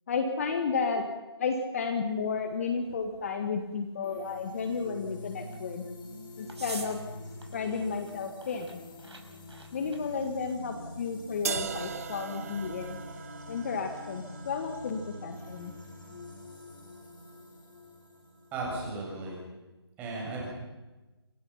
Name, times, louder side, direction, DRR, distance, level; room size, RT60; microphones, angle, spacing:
voice 1, 0.1-1.1 1.4-5.8 6.4-7.0 7.5-8.8 9.7-13.0 13.5-15.7, left 5 dB, 35° left, 6 dB, 1.9 m, -32 dB
sound 1, 2.1-13.0, right 2 dB, 85° right, 5.6 m, -50 dB
sound 2, 4.0-18.7, left 1 dB, 50° left, 5.4 m, -46 dB
sound 3, 11.4-17.4, right 7 dB, 35° right, 1.1 m, -41 dB
voice 2, 18.5-19.4 20.0-20.5, right 2 dB, 10° right, -3 dB, 7.2 m, -35 dB
27.0 x 22.5 x 5.8 m, 1.1 s
figure-of-eight pair, 160°, 14 cm